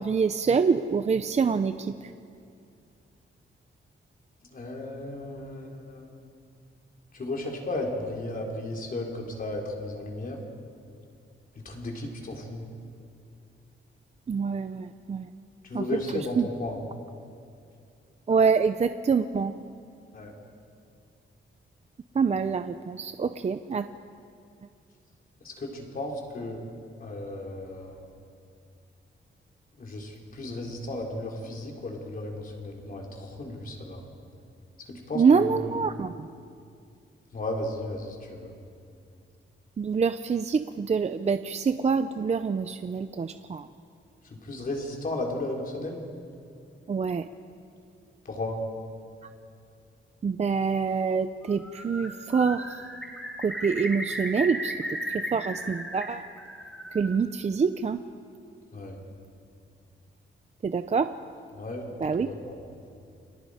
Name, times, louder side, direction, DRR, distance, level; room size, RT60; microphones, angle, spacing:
voice 1, 0.0-1.9 14.3-15.3 15.7-15.8 16.1-16.4 18.3-19.5 22.1-23.9 35.1-36.3 39.8-43.7 46.9-47.2 50.2-52.8 53.4-56.2 56.9-58.0 60.6-61.1 62.0-62.3, right 5 dB, 35° right, 10 dB, 0.5 m, -26 dB
voice 2, 4.5-6.1 7.1-10.4 11.6-12.7 15.6-16.8 20.1-20.3 25.4-26.6 27.0-28.0 29.8-34.0 34.9-35.8 37.3-38.5 44.2-46.0 48.2-48.6 58.7-59.0 61.5-61.9 62.2-62.7, left 2 dB, 45° left, 0 dB, 3.9 m, -34 dB
Bird, 51.5-52.1 52.3-56.0 56.4-57.2, equal, 5° left, 3.6 m, -35 dB
29.5 x 24.0 x 5.0 m, 2.4 s
wide cardioid pair, 165°, 20 cm